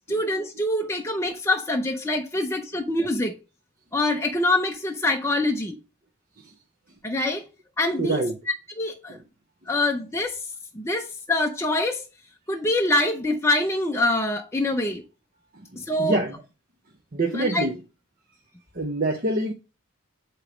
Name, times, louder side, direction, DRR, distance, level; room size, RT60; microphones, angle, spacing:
voice 1, 0.1-3.4 3.9-5.8 7.0-7.4 7.8-8.2 8.8-9.2 9.7-10.4 10.7-12.0 12.5-15.0 15.9-16.2 17.3-17.6, left 1 dB, 10° left, 0.6 m, -25 dB
voice 2, 8.0-8.3 9.1-9.2 15.6-16.4 17.1-17.7 18.7-19.5, right 2 dB, 40° right, 0.7 m, -26 dB
8.2 x 3.0 x 4.9 m
head